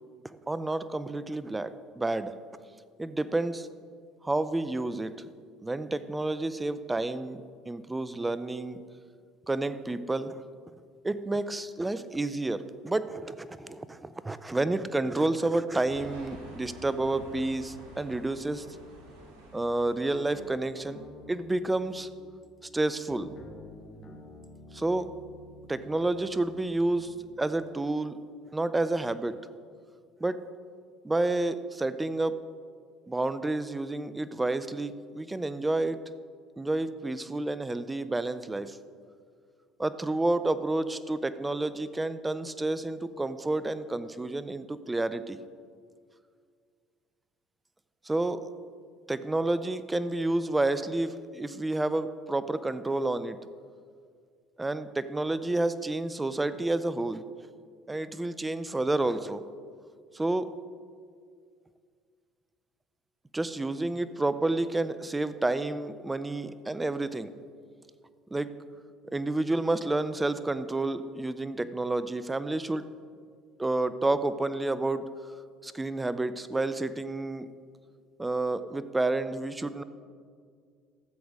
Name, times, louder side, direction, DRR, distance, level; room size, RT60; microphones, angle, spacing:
voice 1, 0.5-2.4 3.0-3.7 4.2-5.3 5.6-8.8 9.5-10.4 11.0-18.7 19.5-21.0 21.3-22.1 22.7-23.3 24.7-25.1 25.7-28.2 28.5-29.4 30.2-30.4 31.0-32.4 33.1-36.0 36.6-38.8 39.8-45.4 48.0-48.5 49.1-53.4 54.6-57.2 57.9-59.4 60.1-60.5 63.3-67.3 68.3-68.6 69.1-72.9 73.6-75.1 75.6-77.5 78.2-79.8, right 2 dB, 15° right, 14 dB, 0.5 m, -30 dB
sound 1, 15.8-20.8, right 2 dB, 85° right, 2.6 m, -48 dB
sound 2, 20.3-27.7, left 1 dB, 45° left, 1.6 m, -51 dB
13.5 x 7.8 x 3.6 m, 2.1 s
supercardioid pair, 75°, 0 cm